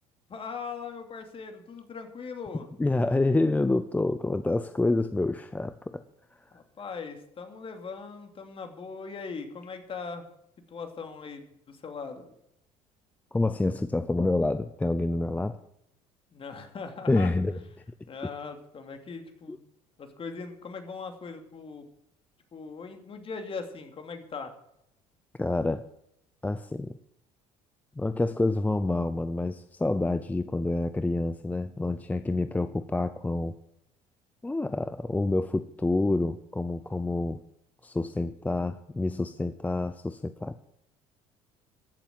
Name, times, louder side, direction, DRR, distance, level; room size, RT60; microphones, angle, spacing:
voice 1, 0.3-2.7 6.5-10.2 10.7-12.3 16.3-17.3 18.1-19.6 20.0-21.9 22.5-24.5, left 5 dB, 40° left, 6 dB, 2.7 m, -40 dB
voice 2, 2.8-6.0 13.3-15.6 17.1-17.6 19.5-19.6 25.4-25.9 26.4-27.0 28.0-33.5 34.4-37.4 37.8-40.6, left 2 dB, 10° left, 11 dB, 0.6 m, -27 dB
15.0 x 7.2 x 7.6 m, 0.77 s
supercardioid pair, 90°, 15 cm